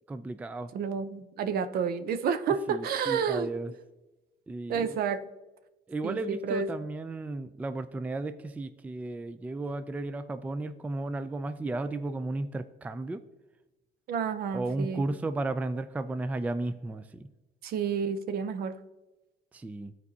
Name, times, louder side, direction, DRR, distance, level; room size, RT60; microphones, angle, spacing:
voice 1, 0.1-0.7 2.7-3.7 4.5-4.9 5.9-13.2 14.5-17.3 19.5-19.9, right 2 dB, 10° right, 12 dB, 0.3 m, -34 dB
voice 2, 0.7-3.5 4.7-5.2 6.0-6.7 14.1-15.0 17.6-18.7, right 6 dB, 65° right, 11 dB, 0.7 m, -30 dB
12.5 x 4.6 x 2.7 m, 1.0 s
cardioid pair, 110°, 17 cm